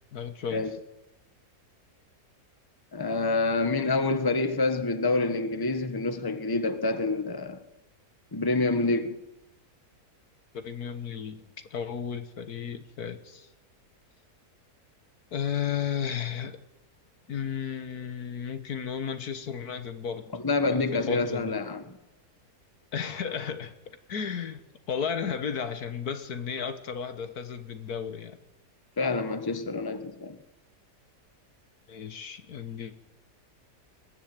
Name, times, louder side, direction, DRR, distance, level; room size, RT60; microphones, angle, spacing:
voice 1, 0.1-0.7 10.5-11.4 11.7-13.5 15.3-16.6 17.3-20.2 20.6-21.6 22.9-24.6 24.9-28.4 31.9-33.0, left 7 dB, 70° left, 1.8 m, -34 dB
voice 2, 2.9-7.6 8.3-9.2 20.3-22.0 29.0-30.4, left 3 dB, 15° left, 1.3 m, -27 dB
21.0 x 14.0 x 8.9 m
omnidirectional pair, 1.7 m